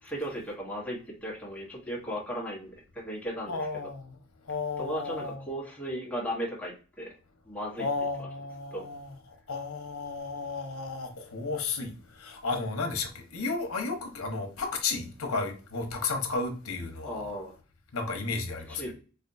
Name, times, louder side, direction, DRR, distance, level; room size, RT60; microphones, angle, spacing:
voice 1, 0.0-3.9 4.8-7.1 7.5-7.9 8.2-8.3 8.7-8.9 17.0-17.5 18.7-18.9, equal, 5° left, 1.1 m, -36 dB
voice 2, 3.5-4.1 4.5-5.4 7.8-9.1 9.5-17.3 17.9-18.8, left 3 dB, 90° left, 0.9 m, -33 dB
4.3 x 2.5 x 2.6 m
head